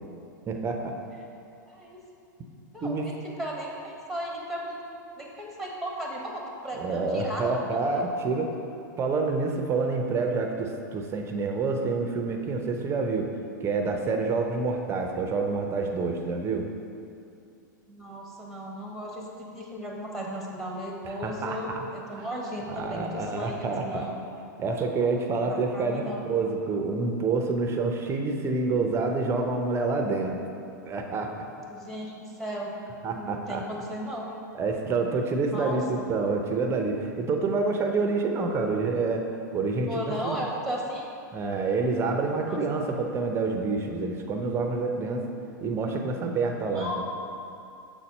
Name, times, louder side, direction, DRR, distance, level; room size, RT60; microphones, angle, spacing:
voice 1, 0.5-1.0 2.8-3.1 6.8-8.5 9.0-13.3 13.6-16.6 21.2-21.9 22.1-22.3 22.7-24.1 24.6-30.4 30.8-31.4 33.0-33.6 34.5-39.2 39.5-40.4 41.3-45.2 45.6-47.0, right 3 dB, 25° right, 3 dB, 0.7 m, -28 dB
voice 2, 1.7-2.0 2.7-4.8 5.2-8.0 8.3-8.4 17.9-24.2 25.4-26.3 31.7-32.7 33.1-34.3 35.5-36.1 39.9-41.1 42.5-42.6 46.7-47.0, equal, ahead, -2 dB, 1.3 m, -35 dB
7.3 x 4.2 x 5.4 m, 2.6 s
hypercardioid pair, 110°, 11 cm